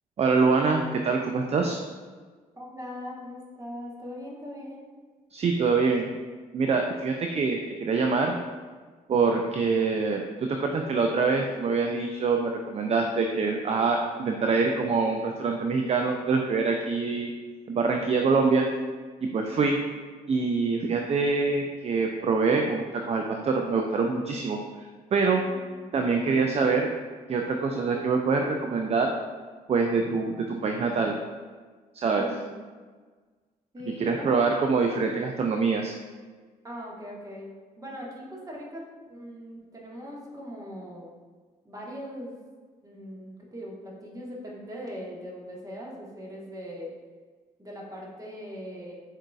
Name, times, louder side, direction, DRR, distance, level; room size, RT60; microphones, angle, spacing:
voice 1, 0.2-1.8 5.3-6.1 6.5-8.4 9.1-17.3 17.7-18.7 19.2-19.8 20.3-25.4 25.9-26.9 27.3-29.2 29.7-31.2 31.9-32.3 33.8-36.0, right 4 dB, 35° right, 3 dB, 0.4 m, -25 dB
voice 2, 2.6-4.9 19.5-19.6 32.1-32.5 33.7-34.5 36.6-37.5 37.8-38.8 39.1-41.1 41.6-42.3 42.8-46.9 47.6-48.9, equal, 20° right, -3 dB, 1.4 m, -40 dB
7.2 x 2.7 x 2.4 m, 1.4 s
figure-of-eight pair, 45°, 19 cm